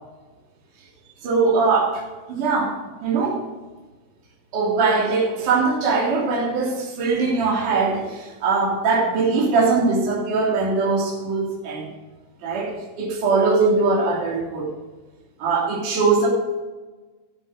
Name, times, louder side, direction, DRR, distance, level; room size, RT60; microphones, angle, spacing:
voice 1, 1.2-2.0 2.3-2.7 3.0-3.4 4.5-11.9 12.4-14.7 15.4-16.3, right 4 dB, 50° right, -5 dB, 4.3 m, -21 dB
17.0 x 7.5 x 5.3 m, 1.3 s
omnidirectional pair, 5.0 m